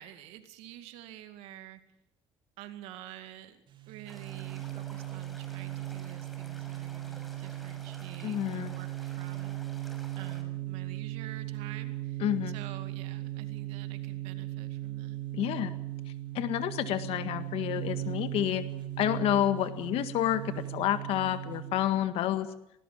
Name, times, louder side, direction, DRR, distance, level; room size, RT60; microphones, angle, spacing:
voice 1, 0.0-1.8 2.6-9.6 10.2-15.2, right 12 dB, 85° right, 9 dB, 2.2 m, -48 dB
sound 1, 3.7-21.9, right 15 dB, 50° right, 3.2 m, -38 dB
sound 2, 4.1-10.4, equal, ahead, 5.7 m, -52 dB
voice 2, 8.2-8.7 12.2-12.5 15.3-15.7 16.3-18.6 19.0-22.5, left 12 dB, 75° left, 11 dB, 1.8 m, -29 dB
20.0 x 18.5 x 7.4 m, 0.80 s
supercardioid pair, 90°, 10 cm